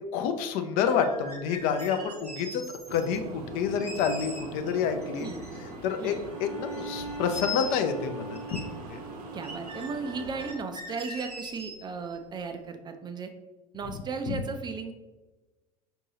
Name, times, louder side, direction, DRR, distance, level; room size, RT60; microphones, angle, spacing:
voice 1, 0.1-2.6 2.9-5.3 5.8-6.1 6.4-9.0 14.3-14.4, left 7 dB, 50° left, 7 dB, 0.4 m, -28 dB
sound 1, 0.9-3.2 3.8-4.7 5.0-6.4 6.6-8.0 8.3-8.6 8.9-9.0 9.4-12.1, left 2 dB, 90° right, 0.8 m, -41 dB
sound 2, 2.9-10.5, right 2 dB, 45° right, 0.7 m, -42 dB
Bowed string instrument, 6.2-11.0, right 2 dB, 75° left, 0.8 m, -42 dB
voice 2, 9.3-13.3 13.7-14.9, right 4 dB, 20° right, 7 dB, 0.4 m, -35 dB
5.3 x 2.6 x 2.7 m, 1.2 s
figure-of-eight pair, 70°, 19 cm